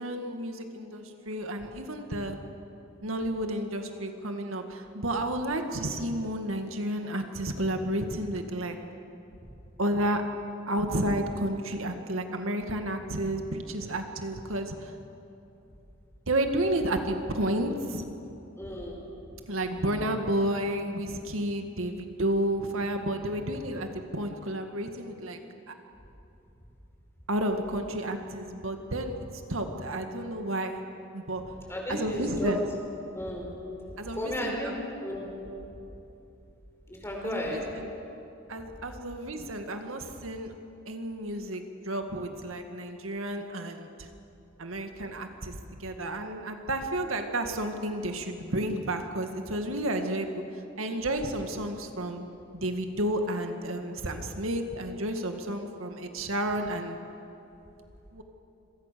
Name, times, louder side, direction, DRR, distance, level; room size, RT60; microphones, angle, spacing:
voice 1, 0.0-2.4 3.0-8.8 9.8-10.2 10.7-14.9 16.3-18.0 19.5-25.4 25.7-25.8 27.3-30.8 31.1-31.4 31.9-32.6 34.0-34.9 37.2-37.9 38.5-40.5 40.9-44.1 44.6-50.4 50.8-52.3 52.5-57.0 58.1-58.2, right 1 dB, 80° right, 5 dB, 2.0 m, -31 dB
voice 2, 18.6-19.0 31.7-32.6 33.1-33.4 34.2-34.7 35.0-35.3 36.9-37.6, equal, 10° left, -1 dB, 5.3 m, -33 dB
29.0 x 23.5 x 6.9 m, 2.9 s
head